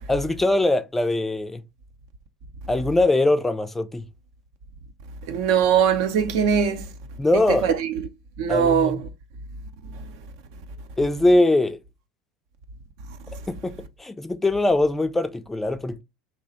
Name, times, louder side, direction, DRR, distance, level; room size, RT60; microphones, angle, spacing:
voice 1, 0.1-1.6 2.7-4.0 7.2-7.7 8.5-9.0 11.0-11.8 13.5-16.0, left 2 dB, 10° left, 0.4 m, -22 dB
voice 2, 5.3-6.8 7.6-7.7 8.4-9.0, right 7 dB, 65° right, 0.6 m, -20 dB
3.0 x 2.0 x 3.9 m
hypercardioid pair, 75°, 2 cm